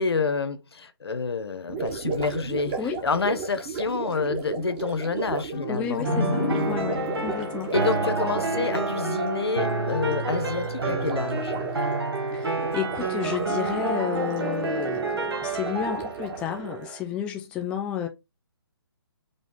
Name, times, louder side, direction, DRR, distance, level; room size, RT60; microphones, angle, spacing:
voice 1, 0.0-6.1 7.7-11.8, left 4 dB, 85° left, 0.9 m, -28 dB
Gurgling, 1.7-16.9, right 4 dB, 25° right, 1.3 m, -35 dB
sound 1, 5.5-9.2, left 2 dB, 40° left, 1.3 m, -32 dB
voice 2, 5.7-7.7 12.3-18.1, left 9 dB, 10° left, 0.3 m, -32 dB
sound 2, 6.0-17.0, right 3 dB, 80° right, 1.6 m, -29 dB
5.2 x 2.3 x 3.7 m
hypercardioid pair, 150°, 13 cm